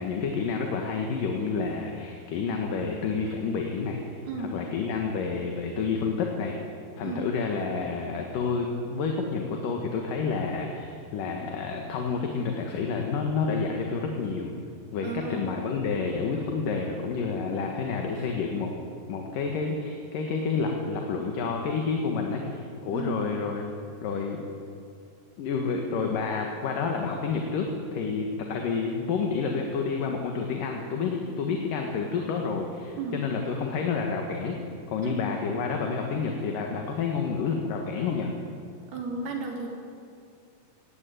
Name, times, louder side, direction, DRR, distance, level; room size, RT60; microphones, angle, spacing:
voice 1, 0.0-6.6 7.0-14.5 14.9-18.7 19.1-23.7 24.0-24.5 25.4-34.6 34.9-38.3, left 5 dB, 65° left, 2 dB, 3.0 m, -29 dB
voice 2, 15.0-15.7 22.9-23.2 33.0-33.2 35.0-35.2 38.9-39.7, right 4 dB, 80° right, 0 dB, 4.7 m, -34 dB
17.5 x 17.0 x 9.2 m, 2.4 s
omnidirectional pair, 4.4 m